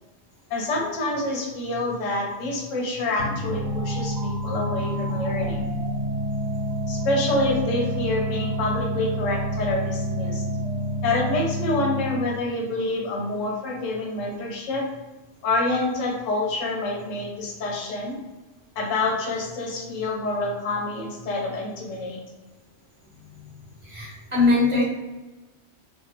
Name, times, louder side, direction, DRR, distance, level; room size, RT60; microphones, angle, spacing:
voice 1, 0.5-5.6 6.9-10.5 11.0-14.9 15.4-18.2 18.8-22.2, left 2 dB, 85° left, 0 dB, 1.0 m, -27 dB
sound 1, 3.2-12.4, equal, 65° right, 0.9 m, -28 dB
voice 2, 23.8-24.8, left 3 dB, 30° right, -7 dB, 0.7 m, -21 dB
3.6 x 2.1 x 2.8 m, 1.1 s
omnidirectional pair, 1.3 m